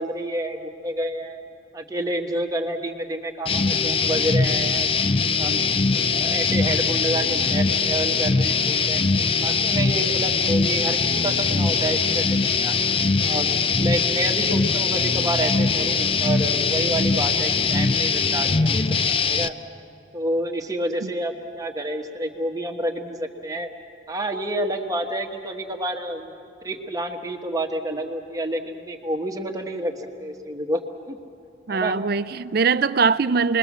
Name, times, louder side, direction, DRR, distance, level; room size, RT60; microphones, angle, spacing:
voice 1, 0.0-1.4 1.7-4.9 5.3-5.6 6.1-9.0 9.4-12.8 13.2-19.5 20.1-23.7 24.1-26.3 26.6-30.8 31.1-31.2 31.7-32.0, right 1 dB, 20° right, 1.4 m, -29 dB
sound 1, 3.5-19.5, left 4 dB, 30° left, 0.5 m, -22 dB
voice 2, 31.7-33.6, right 5 dB, 55° right, 0.5 m, -21 dB
28.0 x 21.0 x 7.3 m
head